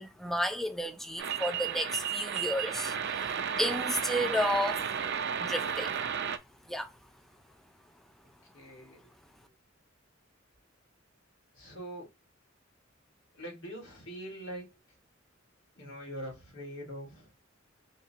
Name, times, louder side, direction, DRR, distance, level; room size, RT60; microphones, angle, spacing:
voice 1, 0.0-3.3 3.6-4.8 5.4-5.9 6.7-6.9, equal, ahead, 0.5 m, -32 dB
sound 1, 1.2-6.4, right 7 dB, 60° right, 0.5 m, -33 dB
voice 2, 8.5-9.1 11.5-12.1 13.3-14.7 15.8-17.3, equal, 65° left, 2.4 m, -43 dB
5.3 x 2.8 x 2.9 m
head